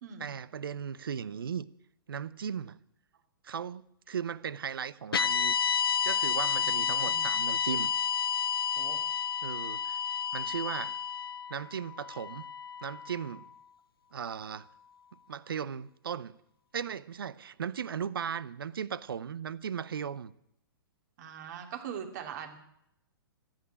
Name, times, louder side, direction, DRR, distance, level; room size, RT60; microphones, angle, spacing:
voice 1, 0.2-1.7 2.1-2.8 3.4-5.6 6.0-7.9 9.4-10.0 10.3-10.9 11.5-12.4 12.8-13.5 14.1-14.7 15.3-16.4 16.7-20.3, right 7 dB, 70° right, 0.7 m, -37 dB
sound 1, 5.1-13.4, left 7 dB, 75° left, 0.5 m, -31 dB
voice 2, 6.8-7.3 8.8-9.0 21.2-22.6, right 8 dB, 50° right, 2.7 m, -42 dB
14.5 x 9.0 x 10.0 m
figure-of-eight pair, 115°, 12 cm